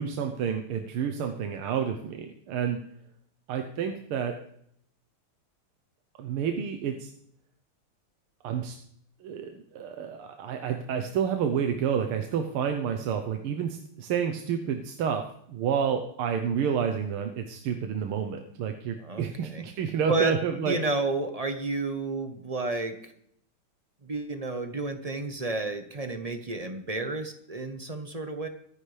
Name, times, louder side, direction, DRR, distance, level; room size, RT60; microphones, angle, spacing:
voice 1, 0.0-2.8 3.5-4.4 6.2-7.1 8.4-8.8 9.2-20.8, right 7 dB, 80° right, 5 dB, 1.8 m, -29 dB
voice 2, 19.0-19.6 20.1-23.1 24.0-28.5, right 3 dB, 30° right, 7 dB, 0.7 m, -31 dB
24.0 x 10.0 x 3.4 m, 0.69 s
omnidirectional pair, 2.4 m